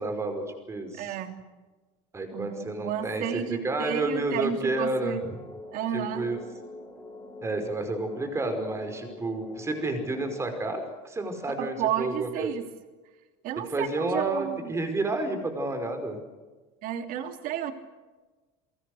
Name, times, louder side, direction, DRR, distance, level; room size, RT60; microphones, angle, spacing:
voice 1, 0.0-1.2 2.1-5.2 5.9-6.4 7.4-12.5 13.7-16.2, right 2 dB, 15° right, 7 dB, 5.3 m, -30 dB
voice 2, 0.9-1.3 2.3-5.2 5.7-6.2 11.6-12.6 13.4-14.7 16.8-17.7, right 9 dB, 55° right, 7 dB, 3.2 m, -32 dB
sound 1, 5.2-10.4, left 2 dB, 15° left, 4.6 m, -44 dB
28.5 x 24.0 x 6.5 m, 1.2 s
cardioid pair, 155°, 17 cm